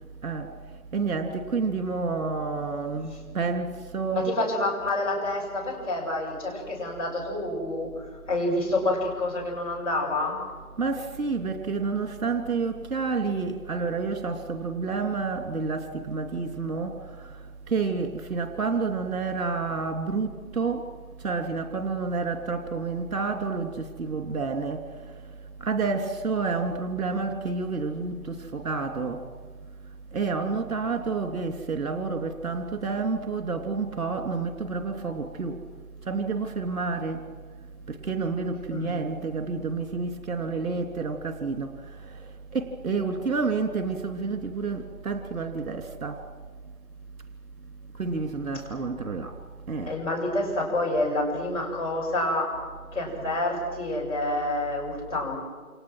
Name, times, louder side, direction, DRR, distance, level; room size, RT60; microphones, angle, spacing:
voice 1, 0.9-4.3 10.8-17.0 17.7-20.9 21.2-24.8 25.6-29.2 30.1-35.6 36.1-37.2 37.9-41.7 42.0-42.1 42.5-46.2 48.0-49.3 49.7-49.9, right 4 dB, 60° right, 5 dB, 3.1 m, -29 dB
voice 2, 4.1-10.4 38.7-39.0 49.9-52.5 52.9-55.4, left 2 dB, 10° left, -5 dB, 6.8 m, -28 dB
29.0 x 28.5 x 6.3 m, 1.5 s
figure-of-eight pair, 150°, 46 cm